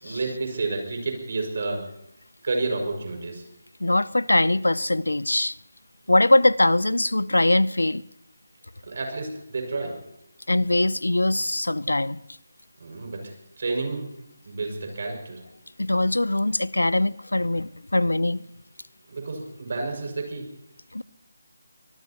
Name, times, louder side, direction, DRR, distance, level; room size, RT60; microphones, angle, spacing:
voice 1, 0.0-1.8 2.4-3.4 8.8-10.0 12.8-14.1 14.5-15.4 19.1-20.5, right 3 dB, 55° right, 5.8 m, -30 dB
voice 2, 3.8-5.6 6.1-8.0 10.5-12.2 15.8-18.4 20.9-21.0, left 1 dB, 90° left, 0.5 m, -22 dB
24.5 x 20.0 x 2.9 m
figure-of-eight pair, 160°, 0 cm